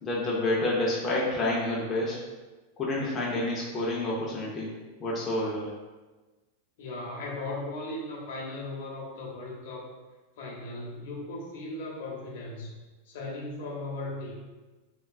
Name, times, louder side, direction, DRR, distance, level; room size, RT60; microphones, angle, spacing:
voice 1, 0.0-2.2 2.8-4.7 5.0-5.7, left 2 dB, 20° left, -6 dB, 0.4 m, -28 dB
voice 2, 6.8-9.9 10.4-12.7 13.1-14.3, left 2 dB, 60° left, -2 dB, 0.7 m, -37 dB
3.2 x 2.3 x 2.2 m, 1.2 s
supercardioid pair, 165°, 0 cm